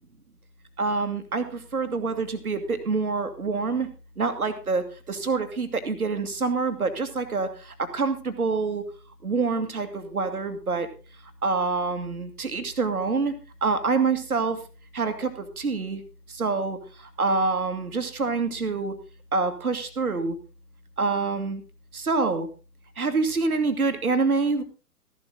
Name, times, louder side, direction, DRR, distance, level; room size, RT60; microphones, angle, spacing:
voice 1, 0.8-3.9 4.2-8.8 9.2-10.9 11.4-13.3 13.6-14.6 14.9-16.0 16.3-18.9 19.3-20.4 21.0-21.6 21.9-22.5 23.0-24.6, right 4 dB, 65° right, 8 dB, 2.0 m, -26 dB
14.0 x 11.5 x 3.8 m, 0.35 s
figure-of-eight pair, 125°, 46 cm